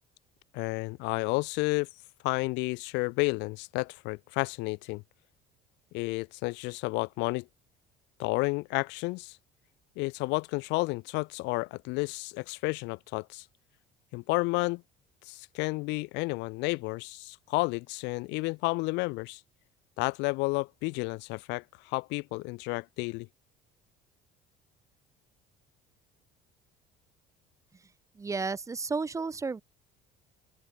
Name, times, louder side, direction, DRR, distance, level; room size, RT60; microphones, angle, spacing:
voice 1, 0.5-1.9 2.2-5.0 5.9-7.5 8.2-9.4 10.0-13.4 14.1-14.8 15.3-19.4 20.0-23.3, left 25 dB, 85° left, 2.1 m, -31 dB
voice 2, 28.2-29.6, right 4 dB, 15° right, 1.4 m, -32 dB
open air
cardioid pair, 140°, 18 cm